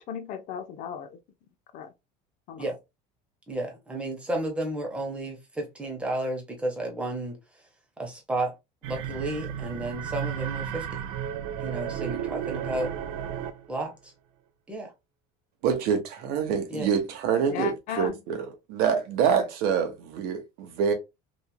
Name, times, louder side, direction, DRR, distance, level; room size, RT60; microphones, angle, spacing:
voice 1, 0.1-1.2 1.7-1.9 2.5-2.6 17.5-18.1, left 8 dB, 50° left, 0.4 m, -35 dB
voice 2, 3.5-7.4 8.0-8.5 8.8-11.0 11.6-12.9 13.7-14.1 14.7-14.9 16.7-16.9, right 1 dB, 5° right, 0.8 m, -32 dB
sound 1, 8.8-13.7, right 9 dB, 85° right, 0.4 m, -33 dB
voice 3, 15.6-20.9, right 7 dB, 65° right, 0.8 m, -26 dB
2.9 x 2.4 x 2.2 m
cardioid pair, 150°, 17 cm